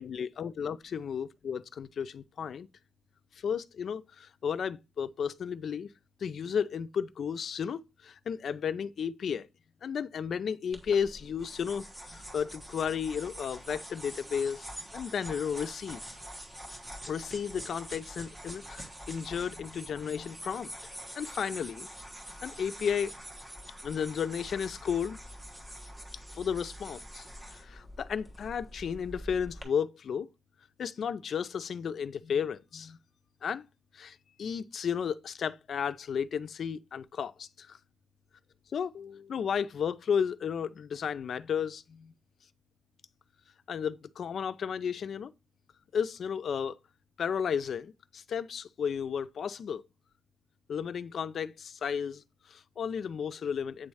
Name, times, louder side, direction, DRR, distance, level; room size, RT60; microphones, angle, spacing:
voice 1, 0.0-2.7 3.4-5.9 6.2-9.5 9.8-14.7 14.9-16.0 17.1-20.7 21.1-21.9 22.4-23.1 23.8-25.2 26.3-30.3 30.8-33.0 33.4-33.6 33.9-37.8 38.7-42.1 43.7-45.3 45.9-46.8 47.2-49.8 50.7-53.9, left 7 dB, 65° left, 0.4 m, -33 dB
sound 1, 10.7-29.6, equal, 15° right, 1.3 m, -45 dB
8.5 x 3.1 x 4.8 m
wide cardioid pair, 170°, 0 cm